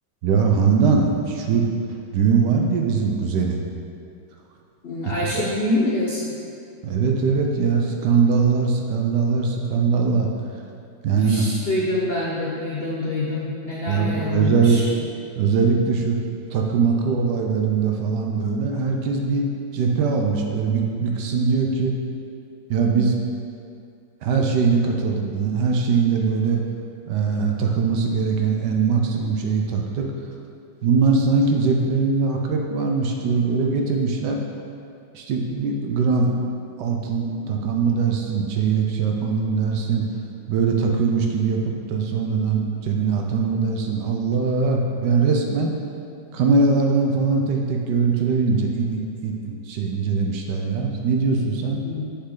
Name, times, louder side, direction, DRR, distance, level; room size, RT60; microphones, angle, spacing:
voice 1, 0.2-3.6 5.3-5.4 6.8-10.3 11.0-11.5 13.9-14.9 15.4-16.2 16.5-19.5 19.7-21.9 22.7-23.2 24.2-26.6 27.1-30.1 30.8-34.4 35.1-36.4 36.8-40.0 40.5-41.6 41.9-45.7 46.3-51.8, right 5 dB, 70° right, 1 dB, 1.2 m, -21 dB
voice 2, 4.8-6.3 11.2-14.8 51.8-52.0, left 2 dB, 70° left, -5 dB, 0.5 m, -26 dB
6.7 x 5.7 x 3.8 m, 2.5 s
omnidirectional pair, 2.1 m